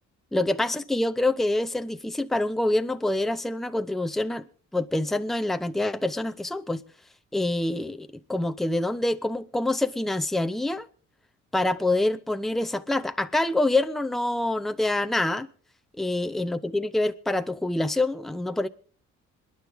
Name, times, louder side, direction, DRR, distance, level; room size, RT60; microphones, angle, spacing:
voice 1, 0.3-4.5 4.7-6.8 7.3-10.9 11.5-15.5 16.0-18.7, left 2 dB, ahead, 0.7 m, -26 dB
26.5 x 10.0 x 3.5 m
cardioid pair, 90°, 30 cm